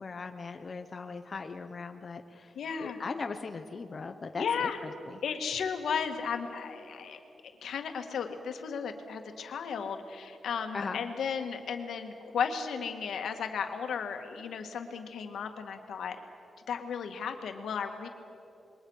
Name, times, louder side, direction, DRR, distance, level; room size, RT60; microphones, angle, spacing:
voice 1, 0.0-5.2 10.7-11.0, left 4 dB, 35° left, 6 dB, 0.9 m, -39 dB
voice 2, 2.6-3.0 4.4-4.8 5.2-7.2 7.6-16.2 16.7-18.1, left 6 dB, 85° left, 5 dB, 1.9 m, -34 dB
27.5 x 22.0 x 6.5 m, 2.7 s
wide cardioid pair, 155°, 0 cm